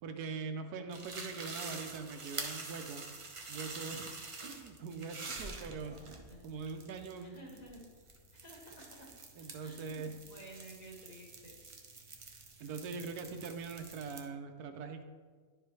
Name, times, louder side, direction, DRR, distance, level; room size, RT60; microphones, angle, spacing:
voice 1, 0.0-3.0 3.5-4.1 4.4-6.0 6.4-7.4 9.3-10.1 12.6-15.0, right 5 dB, 80° right, 7 dB, 1.1 m, -42 dB
sound 1, 0.9-14.2, right 3 dB, 50° right, 0.3 m, -47 dB
voice 2, 3.9-4.8 6.3-6.6 7.2-7.8 8.3-9.1 9.6-11.6, right 1 dB, 30° left, -5 dB, 1.5 m, -53 dB
11.0 x 4.8 x 3.2 m, 1.6 s
omnidirectional pair, 1.6 m